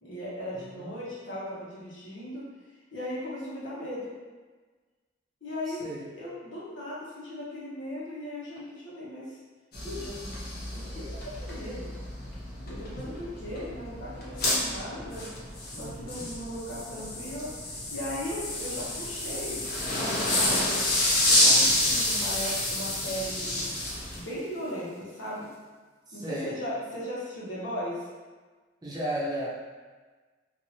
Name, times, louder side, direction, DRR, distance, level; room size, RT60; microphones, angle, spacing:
voice 1, 0.0-2.4 2.9-4.1 5.4-5.8 6.1-9.4 9.8-10.2 10.7-11.0 11.4-12.0 12.7-15.3 15.8-19.6 19.9-20.8 21.3-23.7 24.1-25.5 26.1-28.1, equal, 90° left, -7 dB, 1.1 m, -37 dB
voice 2, 0.5-0.9 5.7-6.1 15.7-16.2 26.1-26.5 28.8-29.5, right 1 dB, 20° right, -7 dB, 0.7 m, -35 dB
sound 1, 9.7-24.2, left 1 dB, 55° left, 0.8 m, -29 dB
sound 2, 19.8-25.8, left 1 dB, 15° left, 0.3 m, -49 dB
3.0 x 2.6 x 2.8 m, 1.4 s
head